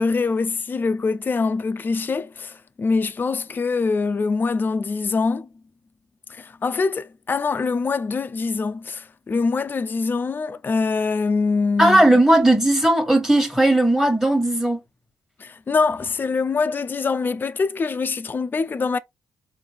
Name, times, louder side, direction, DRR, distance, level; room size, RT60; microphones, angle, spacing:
voice 1, 0.0-5.5 6.3-12.0 15.4-19.0, left 4 dB, 30° left, 0.4 m, -24 dB
voice 2, 11.8-14.8, right 1 dB, 5° right, 1.4 m, -17 dB
4.3 x 2.6 x 3.4 m
cardioid pair, 105°, 6 cm